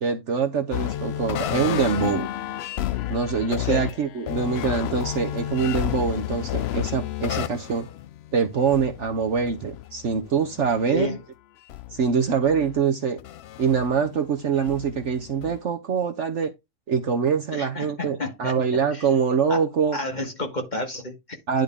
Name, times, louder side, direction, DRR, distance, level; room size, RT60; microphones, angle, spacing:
voice 1, 0.0-2.3 3.1-7.9 8.3-11.2 11.9-13.2 13.6-16.5 16.9-20.0 21.5-21.6, right 6 dB, 55° right, 1.0 m, -24 dB
sound 1, 0.7-11.1 11.7-12.8 13.2-15.6, left 13 dB, 85° left, 0.5 m, -32 dB
voice 2, 10.9-11.2 17.5-18.6 18.9-19.1 19.5-19.6 19.9-21.4, left 2 dB, 30° left, 1.6 m, -31 dB
10.5 x 3.8 x 3.6 m
omnidirectional pair, 1.6 m